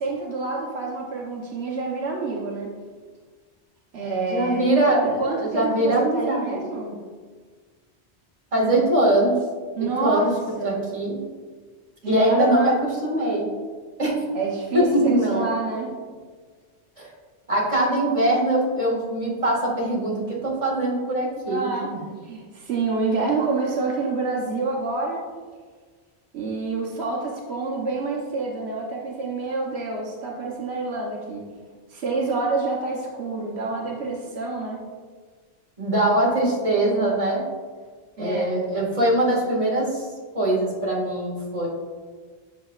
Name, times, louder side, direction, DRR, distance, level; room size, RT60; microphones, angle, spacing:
voice 1, 0.0-2.7 3.9-4.7 5.0-7.0 9.8-10.3 10.6-10.8 12.0-12.7 14.3-15.9 21.5-21.9 22.2-25.2 26.3-31.5 31.9-34.8 38.2-38.5, right 3 dB, 85° right, -1 dB, 1.1 m, -27 dB
voice 2, 4.3-6.6 8.5-9.4 9.8-10.3 10.6-11.2 12.1-13.5 14.0-14.2 14.7-15.5 17.0-17.1 17.5-21.8 35.8-37.4 38.2-40.1 40.3-41.7, right 1 dB, 30° right, -6 dB, 1.8 m, -22 dB
7.9 x 5.8 x 2.4 m, 1.5 s
omnidirectional pair, 1.1 m